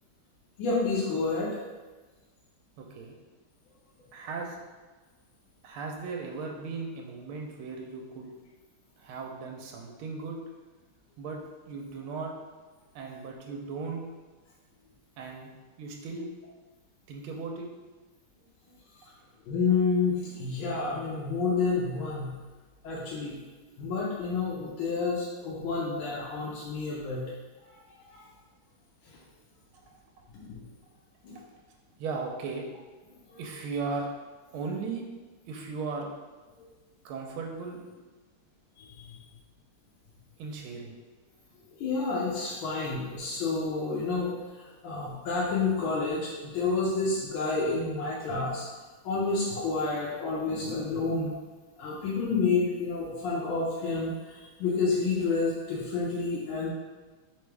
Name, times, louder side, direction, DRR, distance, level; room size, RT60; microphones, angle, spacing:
voice 1, 0.6-1.6 19.5-22.4 22.8-23.4 23.8-27.3 27.7-27.8 28.1-28.2 30.3-30.6 31.2-31.3 33.3-33.4 38.8-39.2 41.8-48.7 49.0-51.3 51.8-56.7, left 4 dB, 75° left, -5 dB, 1.4 m, -29 dB
voice 2, 2.8-3.1 4.1-4.6 5.6-8.3 9.0-10.4 11.2-11.4 11.7-12.3 12.9-14.0 15.2-15.5 15.8-16.3 17.1-17.7 32.0-32.6 33.4-34.1 34.5-35.0 35.4-36.1 37.0-37.8 40.4-41.0, right 4 dB, 80° right, 0 dB, 1.4 m, -36 dB
3.7 x 3.4 x 3.3 m, 1.3 s
omnidirectional pair, 2.4 m